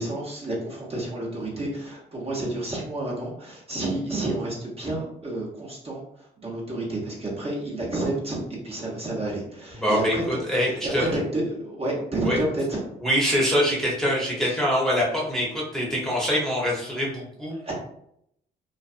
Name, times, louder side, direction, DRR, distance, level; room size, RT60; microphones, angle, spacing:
voice 1, 0.0-8.4 8.6-10.2 10.7-12.8 14.4-14.6 17.6-17.7, right 2 dB, 30° right, -4 dB, 1.0 m, -30 dB
voice 2, 9.8-11.1 12.2-12.4 13.0-17.5, equal, ahead, -5 dB, 1.0 m, -24 dB
2.5 x 2.2 x 2.5 m, 0.72 s
supercardioid pair, 65°, 20 cm